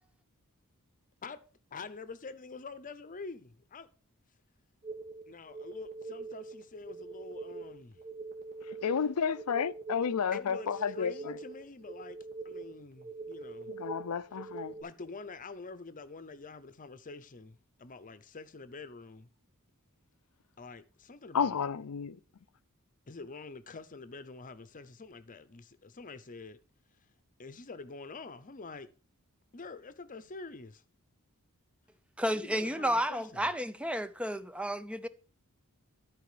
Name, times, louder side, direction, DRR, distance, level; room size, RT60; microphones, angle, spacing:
voice 1, 1.7-3.9 5.3-8.0 10.3-12.2 12.4-13.7 14.8-19.3 20.6-21.6 23.1-26.6 27.4-28.9 29.5-30.8 32.3-33.5, left 4 dB, 35° left, 0.7 m, -46 dB
sound 1, 4.8-14.8, right 3 dB, 45° right, 1.6 m, -44 dB
voice 2, 8.8-11.4 13.7-14.7 21.3-22.2, left 6 dB, 85° left, 0.5 m, -31 dB
voice 3, 32.2-35.1, equal, 5° right, 0.5 m, -32 dB
13.0 x 4.9 x 5.0 m
head